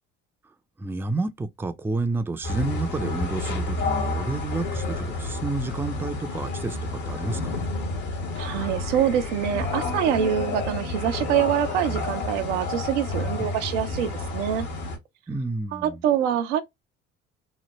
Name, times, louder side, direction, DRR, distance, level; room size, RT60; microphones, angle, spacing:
voice 1, 0.8-7.7 13.4-13.5 15.3-16.0, right 3 dB, 5° right, 0.3 m, -30 dB
sound 1, 2.4-15.0, left 3 dB, 75° left, 1.3 m, -30 dB
voice 2, 8.4-14.7 15.7-16.6, right 10 dB, 85° right, 0.5 m, -25 dB
3.1 x 2.1 x 2.9 m
hypercardioid pair, 55°, 36 cm